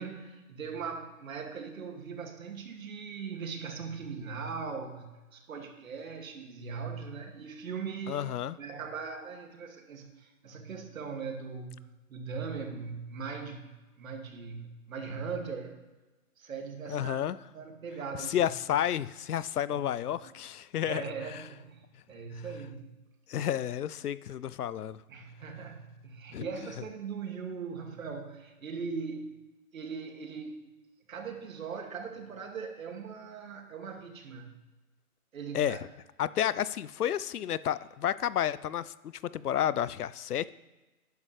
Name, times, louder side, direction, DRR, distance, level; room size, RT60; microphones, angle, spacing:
voice 1, 0.0-5.1 5.3-11.8 12.1-13.7 14.0-15.8 16.4-17.2 17.5-18.5 19.7-20.3 20.8-22.9 25.1-29.3 29.7-30.6 31.1-34.5 35.3-35.8, right 5 dB, 65° right, 3 dB, 2.3 m, -40 dB
voice 2, 8.1-8.6 16.9-17.4 18.3-21.0 23.3-25.0 26.3-26.5 35.5-35.9 36.2-40.5, left 10 dB, 85° left, 18 dB, 0.6 m, -31 dB
12.0 x 9.6 x 3.3 m, 1.1 s
hypercardioid pair, 150°, 44 cm